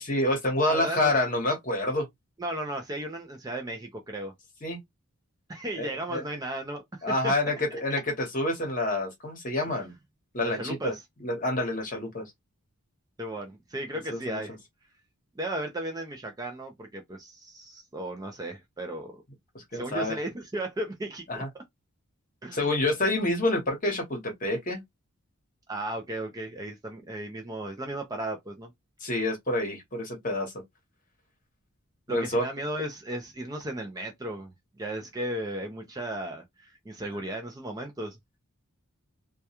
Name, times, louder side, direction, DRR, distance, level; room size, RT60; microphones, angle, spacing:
voice 1, 0.1-2.1 4.6-4.8 5.8-6.2 7.0-9.9 10.3-10.9 11.2-12.3 14.1-14.4 19.5-20.2 21.3-21.5 22.5-24.8 29.0-30.5 32.1-32.4, left 1 dB, 35° left, 1.0 m, -28 dB
voice 2, 0.6-1.1 2.4-4.3 5.5-7.3 7.7-8.0 10.4-11.0 13.2-14.6 15.4-19.2 19.7-21.6 22.4-22.7 25.7-28.7 32.1-38.2, right 1 dB, 15° right, 0.4 m, -35 dB
2.2 x 2.2 x 2.8 m
head